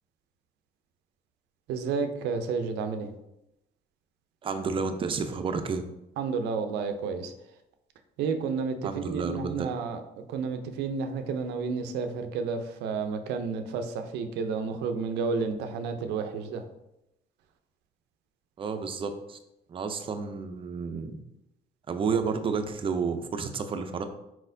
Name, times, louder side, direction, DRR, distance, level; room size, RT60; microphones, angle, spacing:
voice 1, 1.7-3.1 6.2-7.3 8.2-16.6, right 5 dB, 85° right, 7 dB, 0.5 m, -31 dB
voice 2, 4.4-5.8 8.8-9.7 18.6-19.4 19.7-21.2 21.9-24.1, right 5 dB, 30° right, 7 dB, 0.5 m, -31 dB
4.4 x 4.1 x 2.6 m, 0.88 s
cardioid pair, 110°, 17 cm